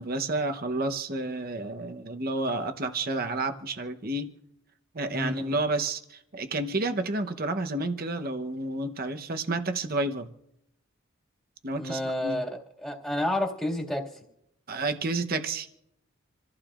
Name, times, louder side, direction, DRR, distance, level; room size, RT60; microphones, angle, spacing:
voice 1, 0.0-4.3 4.9-10.3 11.6-12.4 14.7-15.7, right 2 dB, 45° right, 0.9 m, -30 dB
voice 2, 5.1-5.6 11.7-12.5 12.8-14.1, left 1 dB, 5° left, 2.1 m, -30 dB
27.5 x 15.0 x 2.5 m
head